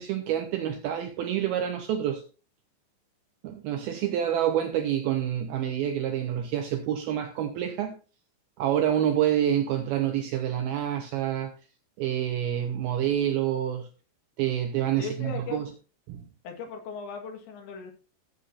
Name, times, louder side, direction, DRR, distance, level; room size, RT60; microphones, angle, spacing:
voice 1, 0.0-2.2 3.4-7.9 8.6-11.5 12.0-13.9 14.4-15.7 16.1-16.3, right 10 dB, 80° right, 2.2 m, -27 dB
voice 2, 15.0-15.6 16.4-17.9, left 6 dB, 80° left, 3.9 m, -37 dB
15.5 x 7.9 x 2.5 m
omnidirectional pair, 5.3 m